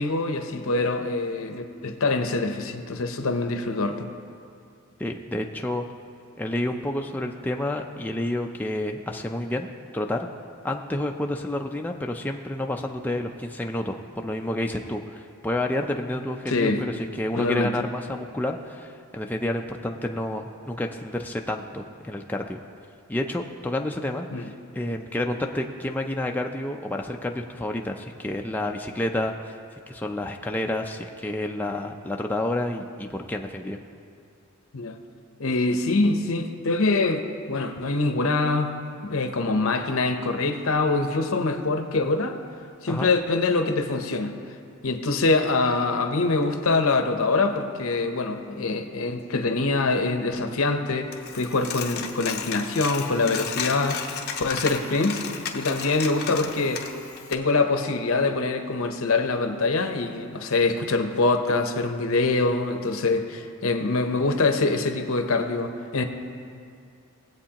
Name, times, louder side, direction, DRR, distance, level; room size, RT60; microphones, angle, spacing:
voice 1, 0.0-4.1 16.5-16.8 17.4-17.7 24.3-24.5 34.7-35.0 35.4-37.2 37.5-38.7 39.0-42.4 42.8-44.3 44.8-55.2 55.5-56.8 57.3-66.0, left 3 dB, 75° left, 6 dB, 0.8 m, -24 dB
voice 2, 5.0-5.8 6.4-10.3 10.6-22.6 23.1-29.6 29.9-33.8 42.9-43.1, left 1 dB, 10° left, 2 dB, 0.4 m, -29 dB
Coin (dropping), 51.1-57.3, left 6 dB, 50° left, 0.8 m, -34 dB
18.5 x 7.9 x 2.9 m, 2.4 s
head